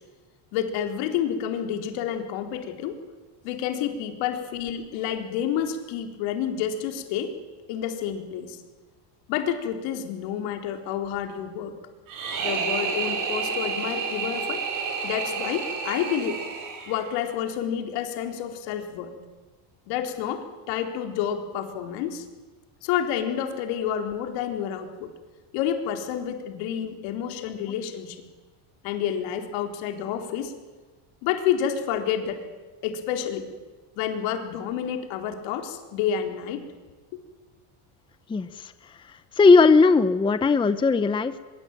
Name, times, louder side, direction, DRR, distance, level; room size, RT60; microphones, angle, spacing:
voice 1, 0.5-3.0 3.4-7.3 7.7-8.6 9.3-11.7 12.4-14.6 15.0-16.4 16.9-19.1 19.9-22.2 22.8-25.1 25.5-28.2 28.8-30.5 31.2-32.5 32.8-33.5 34.0-36.6, left 9 dB, 75° left, 5 dB, 4.2 m, -29 dB
sound 1, 12.1-17.2, right 5 dB, 45° right, 7.2 m, -30 dB
voice 2, 38.3-38.7 39.4-41.4, left 4 dB, 10° left, 12 dB, 0.7 m, -18 dB
24.0 x 22.5 x 9.2 m, 1.3 s
cardioid pair, 150°, 46 cm